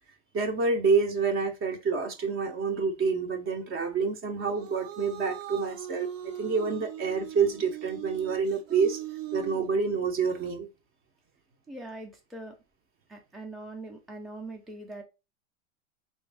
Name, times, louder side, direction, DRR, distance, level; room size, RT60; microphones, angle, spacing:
voice 1, 0.3-9.0 9.3-10.7, right 5 dB, 35° right, 0.9 m, -28 dB
sound 1, 4.4-10.5, right 12 dB, 80° right, 0.8 m, -40 dB
voice 2, 11.7-12.5 13.1-15.0, right 2 dB, ahead, 0.7 m, -42 dB
3.1 x 2.7 x 3.4 m
hypercardioid pair, 105°, 37 cm